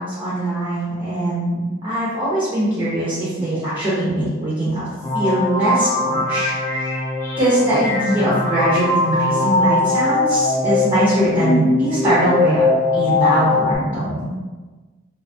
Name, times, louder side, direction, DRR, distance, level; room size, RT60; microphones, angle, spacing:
voice 1, 0.0-4.9 5.1-6.9 7.4-12.7 12.9-14.2, right 1 dB, 25° right, -10 dB, 0.7 m, -21 dB
sound 1, 5.0-13.8, left 2 dB, 15° left, 0.3 m, -20 dB
2.6 x 2.4 x 2.6 m, 1.3 s
head